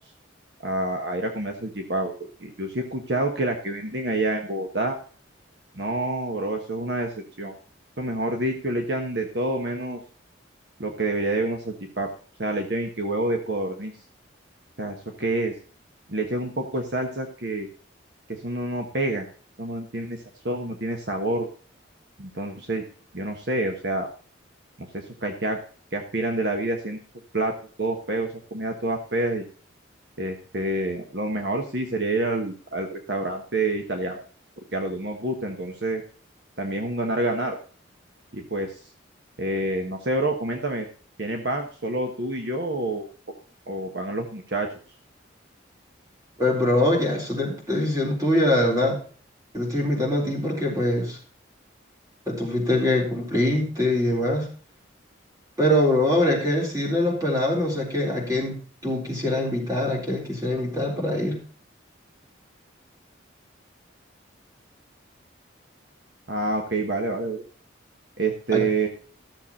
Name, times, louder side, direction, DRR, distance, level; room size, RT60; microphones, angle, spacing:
voice 1, 0.6-2.1 2.4-5.0 5.8-7.5 8.0-10.0 10.8-12.1 12.4-13.9 14.8-15.5 16.1-17.7 18.3-19.3 19.6-20.2 20.4-21.5 22.2-22.8 23.1-24.1 24.8-25.6 25.9-27.0 27.3-29.4 30.2-34.2 34.7-36.0 36.6-37.6 38.3-38.7 39.4-40.9 41.2-43.1 43.7-44.7 66.3-67.4 68.2-68.9, right 2 dB, 55° right, 3 dB, 1.4 m, -27 dB
voice 2, 46.4-49.0 49.5-51.2 52.3-54.5 55.6-58.5 58.8-61.4 68.5-68.6, left 1 dB, 20° right, -1 dB, 3.8 m, -23 dB
14.0 x 7.1 x 4.2 m, 0.41 s
head